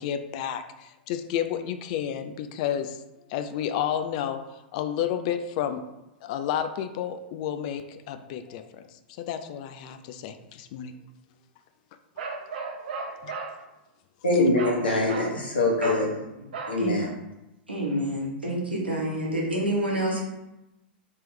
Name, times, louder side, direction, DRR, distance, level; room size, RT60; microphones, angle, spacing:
voice 1, 0.0-3.0 3.3-4.4 4.7-5.8 6.2-8.8 9.2-10.9 13.2-13.3, left 9 dB, 45° left, 9 dB, 0.3 m, -31 dB
Bark, 12.2-13.5 14.6-14.8 15.1-15.4 15.8-16.1 16.5-16.8, right 4 dB, 60° right, 0.6 m, -35 dB
voice 2, 14.2-16.1 16.7-17.1, left 2 dB, 75° left, -2 dB, 1.1 m, -23 dB
voice 3, 17.7-20.2, right 1 dB, 85° right, -3 dB, 1.1 m, -28 dB
3.3 x 3.0 x 3.2 m, 0.94 s
figure-of-eight pair, 100°, 5 cm